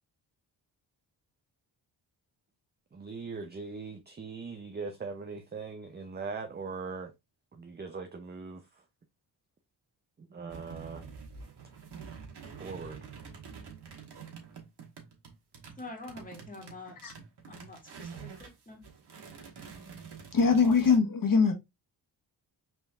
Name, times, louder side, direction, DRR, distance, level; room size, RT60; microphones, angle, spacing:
voice 1, 2.9-7.1 7.5-8.8 10.2-11.1 12.6-13.1, right 4 dB, 20° right, 0.6 m, -40 dB
sound 1, 10.5-18.5 18.8-21.0, right 6 dB, 60° right, 1.5 m, -47 dB
voice 2, 15.8-17.0 17.5-18.8, left 2 dB, 20° left, 1.9 m, -46 dB
voice 3, 20.3-21.5, left 5 dB, 45° left, 1.4 m, -22 dB
4.4 x 3.4 x 2.4 m
cardioid pair, 60°, 46 cm